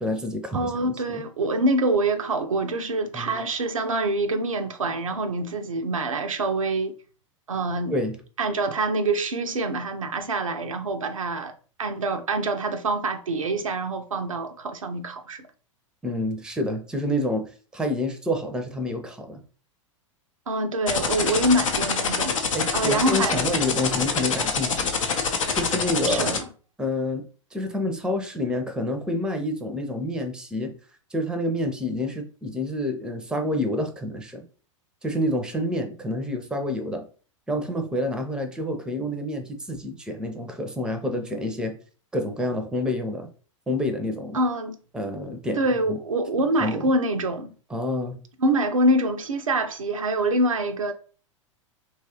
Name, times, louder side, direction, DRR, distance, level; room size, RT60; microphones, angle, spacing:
voice 1, 0.0-1.2 3.1-3.4 7.9-8.2 16.0-19.4 22.5-24.9 25.5-26.4 26.8-27.2 27.5-30.7 31.1-34.4 35.0-37.1 37.5-41.8 42.1-43.3 43.7-44.4 44.9-45.6 45.9-46.0 46.6-46.9 47.7-48.2, left 1 dB, 5° right, 0.5 m, -28 dB
voice 2, 0.5-6.9 7.5-7.9 8.4-11.5 11.8-15.4 20.5-22.3 22.7-23.4 26.1-26.4 44.3-44.8 45.6-47.5 48.4-50.9, right 2 dB, 85° right, 0.4 m, -25 dB
sound 1, 20.9-26.4, left 6 dB, 80° left, 0.5 m, -25 dB
3.0 x 2.3 x 2.8 m
figure-of-eight pair, 95°, 17 cm